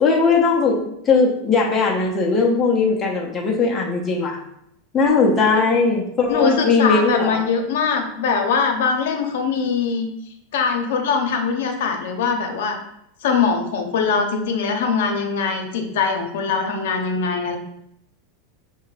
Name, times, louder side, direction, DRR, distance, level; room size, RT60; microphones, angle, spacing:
voice 1, 0.0-4.4 4.9-7.4, left 4 dB, 15° left, -2 dB, 0.6 m, -19 dB
voice 2, 6.3-10.1 10.5-12.8 13.2-17.6, left 5 dB, 70° left, 4 dB, 0.7 m, -22 dB
5.4 x 2.1 x 3.9 m, 0.75 s
supercardioid pair, 165°, 0 cm